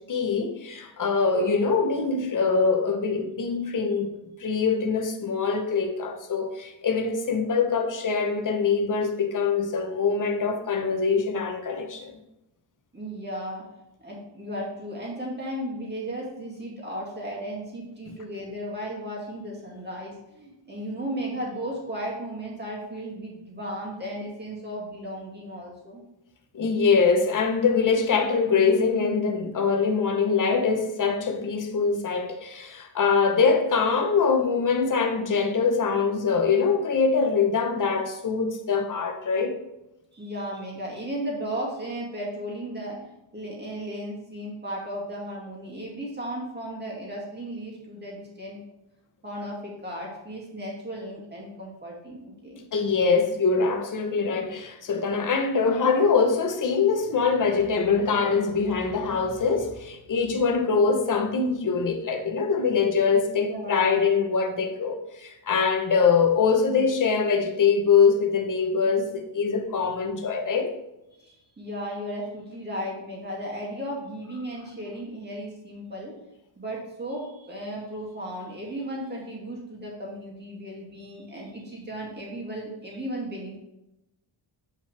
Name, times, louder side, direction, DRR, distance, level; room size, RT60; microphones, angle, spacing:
voice 1, 0.0-4.1 4.4-12.1 26.5-39.5 52.7-70.7, left 5 dB, 40° left, 1.0 m, -23 dB
voice 2, 12.9-13.7 14.0-26.0 40.1-48.6 49.2-52.6 63.3-64.0 71.2-76.1 76.6-83.6, right 1 dB, 20° right, 2.2 m, -35 dB
8.5 x 5.5 x 3.3 m
wide cardioid pair, 155°, 48 cm